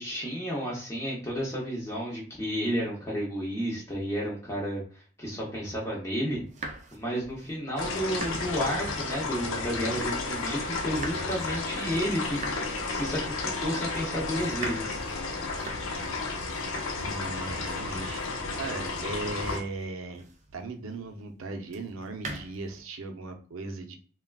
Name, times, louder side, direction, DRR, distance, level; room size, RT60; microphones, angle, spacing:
voice 1, 0.0-6.4 6.9-12.4 12.8-15.0, equal, 15° left, -4 dB, 0.6 m, -32 dB
sound 1, 6.3-10.5 10.8-20.7 21.7-22.8, right 2 dB, 35° right, 0.4 m, -43 dB
sound 2, 7.8-19.6, left 3 dB, 90° left, 0.6 m, -33 dB
voice 2, 17.0-18.2 18.5-20.3 20.5-24.0, right 3 dB, 90° right, 5 dB, 0.5 m, -37 dB
3.5 x 2.2 x 2.2 m, 0.42 s
head